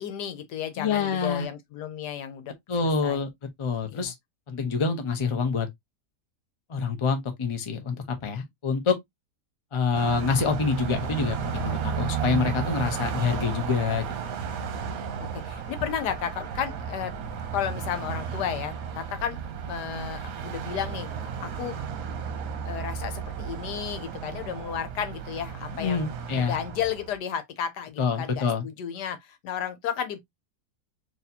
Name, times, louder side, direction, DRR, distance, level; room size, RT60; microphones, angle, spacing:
voice 1, 0.0-2.5 3.0-3.2 3.9-4.1 15.2-17.1 17.5-19.4 19.6-21.1 21.4-21.8 22.6-30.2, left 9 dB, 90° left, 1.4 m, -33 dB
voice 2, 0.8-1.5 2.7-3.3 3.6-4.1 4.5-5.7 6.7-8.9 9.7-14.0 25.8-26.5 28.0-28.6, left 5 dB, 30° left, 0.5 m, -26 dB
Car passing by, 9.9-27.2, right 7 dB, 70° right, 1.1 m, -33 dB
4.2 x 3.1 x 2.7 m
omnidirectional pair, 1.7 m